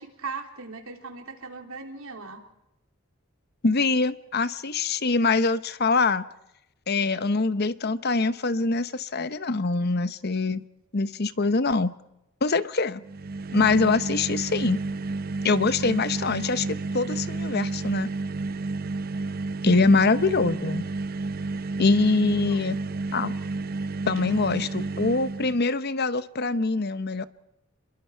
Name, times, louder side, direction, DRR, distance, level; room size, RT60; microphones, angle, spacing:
voice 1, 0.0-2.4 19.8-20.0 22.3-22.6, right 4 dB, 80° right, 4 dB, 3.3 m, -39 dB
voice 2, 3.6-6.3 6.9-10.6 10.9-11.9 12.4-13.0 13.5-14.8 15.4-18.1 19.6-20.8 21.8-22.8 23.1-23.3 24.1-27.3, left 3 dB, 50° left, 14 dB, 0.9 m, -24 dB
sound 1, 13.0-25.6, right 3 dB, 45° right, 0.7 m, -31 dB
28.5 x 22.0 x 4.6 m, 0.86 s
head